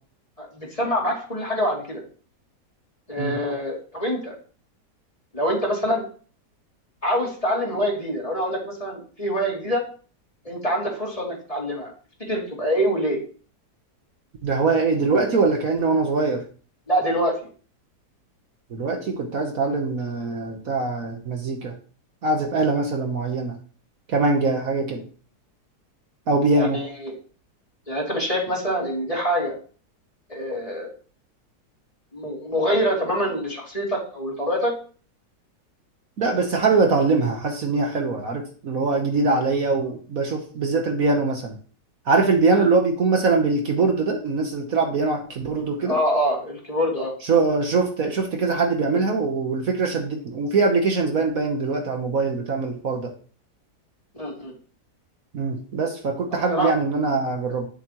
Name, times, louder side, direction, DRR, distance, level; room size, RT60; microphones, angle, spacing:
voice 1, 0.4-2.0 3.1-4.3 5.3-6.0 7.0-9.8 10.4-11.9 12.3-13.2 16.9-17.3 26.5-27.1 27.9-29.5 30.3-30.9 32.1-34.7 42.5-42.7 45.9-47.1 54.1-54.5 56.5-56.7, equal, 20° left, -3 dB, 3.0 m, -25 dB
voice 2, 14.4-16.4 18.7-21.7 22.2-23.6 24.1-25.0 26.3-26.8 36.2-41.6 42.0-46.0 47.2-53.1 55.3-57.7, right 3 dB, 60° right, 3 dB, 1.5 m, -22 dB
11.0 x 7.2 x 3.1 m, 0.40 s
omnidirectional pair, 1.8 m